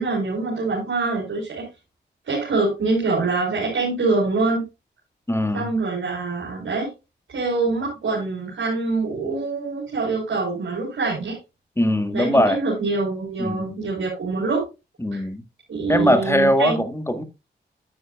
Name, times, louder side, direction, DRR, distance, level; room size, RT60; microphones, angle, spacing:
voice 1, 0.0-1.7 2.3-4.6 5.5-6.9 7.3-11.4 12.1-14.6 15.1-15.2 15.7-16.8, right 3 dB, 80° right, 4.2 m, -24 dB
voice 2, 5.3-5.7 11.8-12.6 13.4-13.8 15.0-15.4 15.9-17.2, left 1 dB, 15° left, 2.0 m, -21 dB
9.8 x 9.5 x 2.4 m
supercardioid pair, 40°, 20 cm